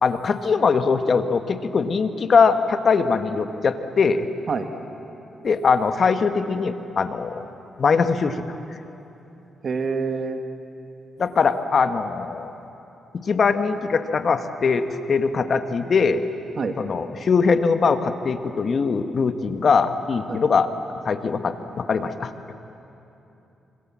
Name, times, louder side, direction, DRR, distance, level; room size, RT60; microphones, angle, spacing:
voice 1, 0.0-4.3 5.4-7.5 7.8-8.6 11.2-12.5 13.1-16.2 16.8-22.3, left 5 dB, 55° left, 9 dB, 1.4 m, -21 dB
voice 2, 9.6-10.4 16.6-16.8 20.3-20.4, right 5 dB, 55° right, 6 dB, 1.9 m, -26 dB
26.0 x 26.0 x 7.5 m, 2.9 s
cardioid pair, 80°, 0 cm